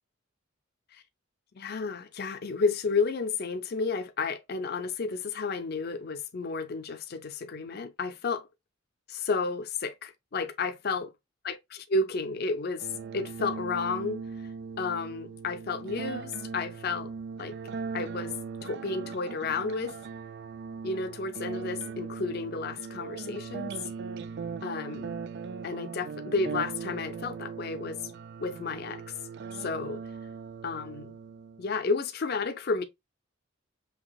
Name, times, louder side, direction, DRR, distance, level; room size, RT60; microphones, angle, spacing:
voice 1, 1.5-8.5 9.1-11.1 11.4-12.9 13.1-14.2 14.8-17.1 17.4-17.5 17.9-18.4 18.6-20.0 20.8-23.7 24.6-25.1 25.6-28.1 28.4-29.0 29.6-30.0 30.6-31.2 31.6-32.8, left 4 dB, 50° left, 0.5 m, -32 dB
sound 1, 12.8-31.8, right 5 dB, 55° right, 0.3 m, -39 dB
5.7 x 2.8 x 2.2 m
head